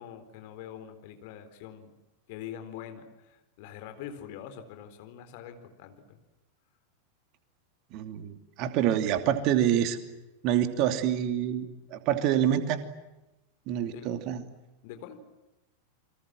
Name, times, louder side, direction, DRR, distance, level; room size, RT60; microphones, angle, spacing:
voice 1, 0.0-1.9 2.3-6.2 13.8-14.1 14.8-15.2, left 9 dB, 50° left, 9 dB, 4.0 m, -44 dB
voice 2, 7.9-10.0 10.4-12.8 13.7-14.4, right 10 dB, 40° right, 9 dB, 2.7 m, -27 dB
29.5 x 24.5 x 7.6 m, 1.0 s
figure-of-eight pair, 90°, 0 cm